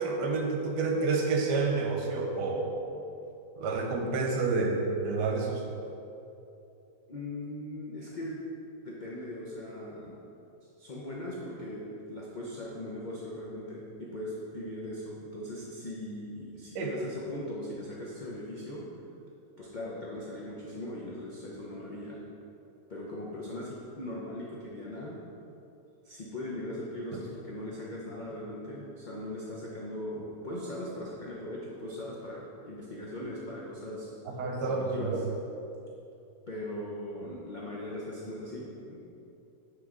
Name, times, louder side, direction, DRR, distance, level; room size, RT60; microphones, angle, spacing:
voice 1, 0.0-2.7 3.6-5.7 16.7-16.9 27.1-27.2 34.3-35.2, right 3 dB, 75° right, 1 dB, 1.3 m, -29 dB
voice 2, 7.1-8.4 8.8-10.2 10.8-18.9 19.6-22.2 22.9-25.2 26.1-34.1 34.7-35.2 36.5-39.0, left 1 dB, 80° left, -5 dB, 0.4 m, -39 dB
9.2 x 3.3 x 3.7 m, 2.8 s
omnidirectional pair, 1.8 m